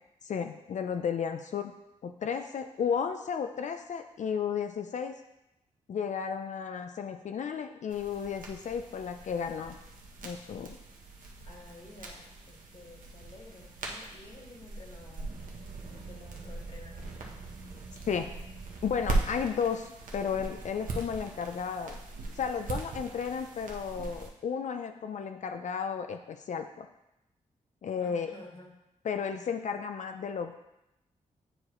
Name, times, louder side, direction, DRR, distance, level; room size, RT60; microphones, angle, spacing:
voice 1, 0.2-1.7 2.0-5.2 5.9-9.8 10.2-10.8 18.1-18.3 18.8-22.0 22.3-26.9 27.8-28.3 29.0-30.5, left 7 dB, 65° left, 7 dB, 0.4 m, -33 dB
sound 1, 7.9-24.3, right 3 dB, 85° right, 1.0 m, -40 dB
voice 2, 11.4-15.5 15.9-17.3 17.7-17.9 28.0-28.7, left 2 dB, 40° left, -1 dB, 1.7 m, -52 dB
8.7 x 4.7 x 3.1 m, 0.89 s
cardioid pair, 85°, 14 cm